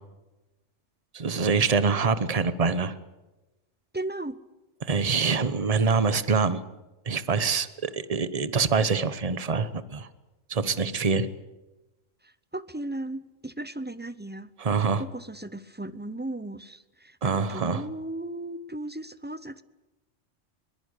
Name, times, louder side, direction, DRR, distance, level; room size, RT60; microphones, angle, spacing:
voice 1, 1.1-2.9 4.8-6.6 7.1-10.1 10.5-11.3 14.6-15.0 17.2-17.8, right 5 dB, 30° right, 14 dB, 1.1 m, -25 dB
voice 2, 3.9-4.4 12.2-14.5 14.8-19.6, right 1 dB, 10° right, 15 dB, 0.5 m, -36 dB
22.0 x 20.5 x 8.3 m, 1.1 s
omnidirectional pair, 1.3 m